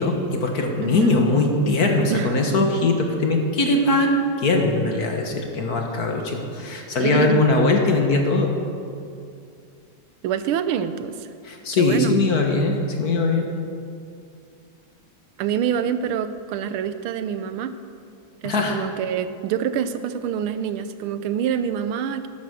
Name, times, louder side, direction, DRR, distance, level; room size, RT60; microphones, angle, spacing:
voice 1, 0.0-8.5 11.4-13.5 18.4-18.8, left 2 dB, 50° left, 2 dB, 1.8 m, -21 dB
voice 2, 0.8-1.2 2.1-2.5 7.0-7.4 10.2-11.3 11.7-12.1 15.4-17.7 18.4-22.3, right 8 dB, 90° right, 11 dB, 1.6 m, -26 dB
13.5 x 12.0 x 6.3 m, 2.4 s
omnidirectional pair, 2.3 m